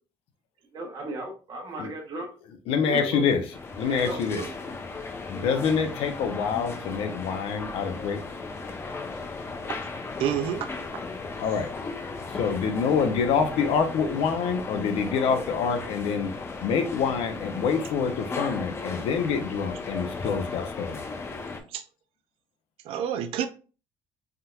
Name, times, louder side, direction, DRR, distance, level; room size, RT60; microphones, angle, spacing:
voice 1, 0.7-2.3 2.8-3.2 3.8-4.5, right 2 dB, 40° right, 0 dB, 1.0 m, -35 dB
voice 2, 2.7-3.4 3.8-4.4 5.3-8.2 11.4-11.7 12.3-16.3 16.6-21.0, left 6 dB, 75° left, 6 dB, 0.6 m, -26 dB
sound 1, 3.5-21.6, left 3 dB, 25° left, 0.6 m, -36 dB
voice 3, 10.2-10.7 10.9-11.0 21.7-21.8 22.8-23.5, right 9 dB, 70° right, 7 dB, 0.4 m, -28 dB
3.5 x 2.8 x 2.3 m, 0.35 s
cardioid pair, 120°, 10 cm